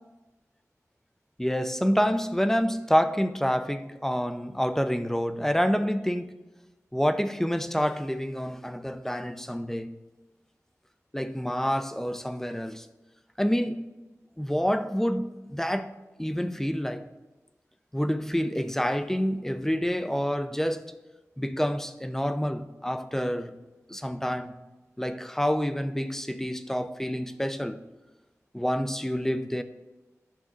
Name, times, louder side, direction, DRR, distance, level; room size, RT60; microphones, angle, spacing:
voice 1, 1.4-6.4 6.9-9.9 11.1-12.9 13.4-13.9 14.4-15.9 16.2-17.1 17.9-20.8 21.4-23.6 23.9-24.5 25.0-27.8 28.5-29.6, equal, 5° left, 0.5 m, -28 dB
10.5 x 5.9 x 3.8 m
wide cardioid pair, 55°, 6 cm